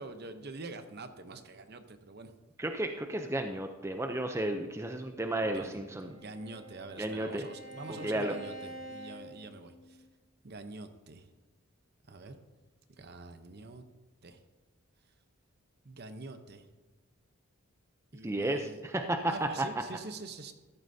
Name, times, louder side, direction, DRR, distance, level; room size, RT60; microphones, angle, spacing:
voice 1, 0.0-2.3 5.4-10.0 10.4-11.3 12.1-12.4 13.0-13.8 14.2-14.4 15.8-16.7 18.1-18.8 19.3-20.5, right 3 dB, 50° right, 9 dB, 0.8 m, -45 dB
voice 2, 2.6-6.2 7.0-7.5 7.9-8.4 18.2-19.5, right 1 dB, 10° right, 5 dB, 0.5 m, -33 dB
Bowed string instrument, 5.7-10.1, right 1 dB, 45° left, 4.0 m, -48 dB
14.0 x 11.0 x 2.7 m, 1.2 s
head